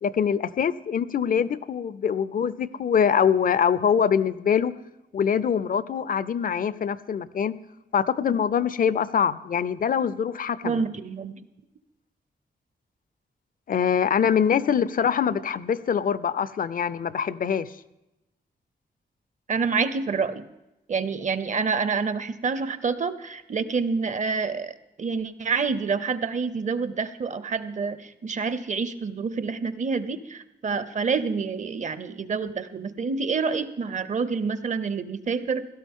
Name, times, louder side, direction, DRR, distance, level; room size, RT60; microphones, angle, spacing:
voice 1, 0.0-4.7 5.1-7.5 7.9-10.8 13.7-17.7, left 7 dB, 55° left, 17 dB, 0.5 m, -24 dB
voice 2, 10.6-11.4 19.5-20.5 20.9-24.7 25.0-35.7, right 5 dB, 45° right, 13 dB, 0.7 m, -27 dB
16.5 x 13.0 x 3.7 m, 0.96 s
wide cardioid pair, 100°, 17 cm